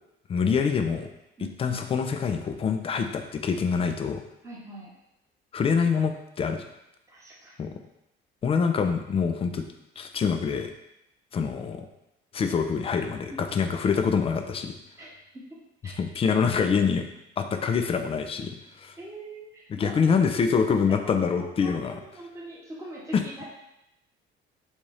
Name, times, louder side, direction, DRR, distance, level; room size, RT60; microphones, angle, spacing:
voice 1, 0.3-1.1 1.6-4.2 5.5-6.6 7.6-7.7 8.4-9.6 10.0-10.7 11.3-11.9 12.3-14.7 15.8-17.1 17.4-18.9 19.7-22.0 23.1-23.2, left 6 dB, 20° left, 6 dB, 0.3 m, -25 dB
voice 2, 1.4-1.8 4.4-4.9 7.1-7.5 13.3-13.4 15.0-15.1 15.3-15.4 15.8-16.0 19.0-20.1 21.0-23.4, right 1 dB, 10° right, -4 dB, 0.9 m, -42 dB
3.4 x 2.8 x 3.2 m, 0.86 s
figure-of-eight pair, 55°, 29 cm